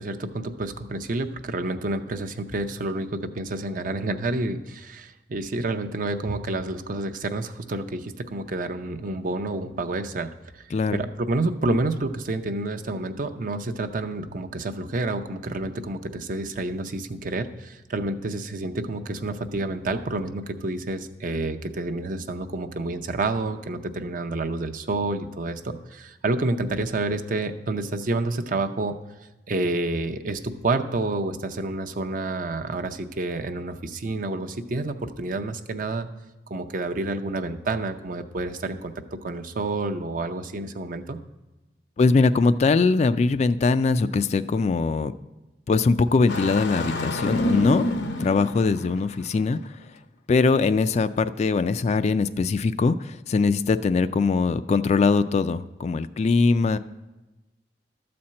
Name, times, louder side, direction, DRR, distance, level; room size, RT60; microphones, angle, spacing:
voice 1, 0.0-10.7 10.9-29.0 29.5-36.1 36.5-41.2, right 2 dB, 50° right, 7 dB, 0.6 m, -29 dB
voice 2, 10.7-11.0 42.0-45.1 45.7-47.9 48.2-49.6 50.3-56.8, left 4 dB, 40° left, 12 dB, 0.3 m, -21 dB
Engine starting, 46.3-49.3, left 1 dB, 75° left, 0.7 m, -28 dB
12.5 x 4.3 x 7.5 m, 1.1 s
head